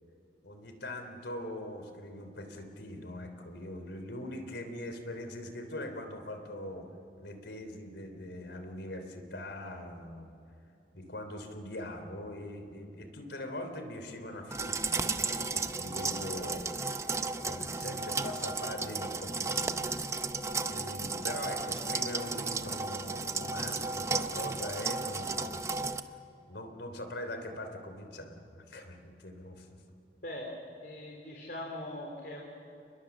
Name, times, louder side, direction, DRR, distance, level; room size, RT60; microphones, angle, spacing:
voice 1, 0.4-6.8 7.2-10.3 10.9-16.7 17.4-20.0 20.7-25.8 26.5-29.7, left 1 dB, 75° left, 6 dB, 3.4 m, -42 dB
sound 1, 14.5-26.0, right 4 dB, 15° right, 0.7 m, -34 dB
voice 2, 30.2-30.5 30.8-32.4, left 1 dB, 55° left, 0 dB, 3.4 m, -41 dB
29.5 x 21.0 x 7.2 m, 2.8 s
head